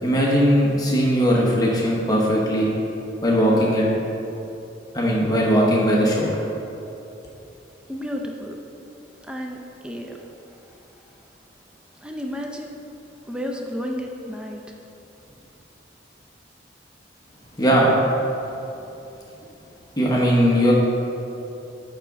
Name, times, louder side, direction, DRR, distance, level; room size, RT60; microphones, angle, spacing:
voice 1, 0.0-2.7 3.2-3.9 4.9-6.3 17.6-17.9 20.0-20.7, equal, 20° left, -4 dB, 1.0 m, -19 dB
voice 2, 7.9-8.6 9.2-10.8 12.0-12.7 13.3-14.6, equal, 5° right, 1 dB, 0.4 m, -32 dB
8.8 x 3.7 x 5.8 m, 2.9 s
head